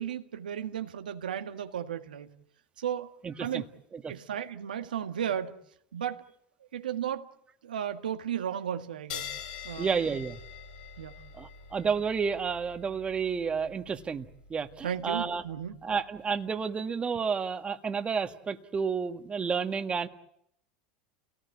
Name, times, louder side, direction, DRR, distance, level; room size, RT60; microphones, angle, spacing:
voice 1, 0.0-2.3 2.8-3.1 3.4-3.6 4.1-5.5 5.9-6.2 6.7-7.3 7.6-9.3 9.6-9.9 11.0-11.2 14.8-15.7, right 9 dB, 90° right, 6 dB, 1.8 m, -34 dB
voice 2, 3.2-3.6 4.0-4.1 9.8-10.4 11.3-14.3 14.5-15.4 15.8-20.1, right 6 dB, 25° right, 7 dB, 1.8 m, -31 dB
sound 1, 9.1-16.1, left 7 dB, 70° left, 6.1 m, -45 dB
29.5 x 18.5 x 8.5 m, 0.74 s
hypercardioid pair, 95°, 5 cm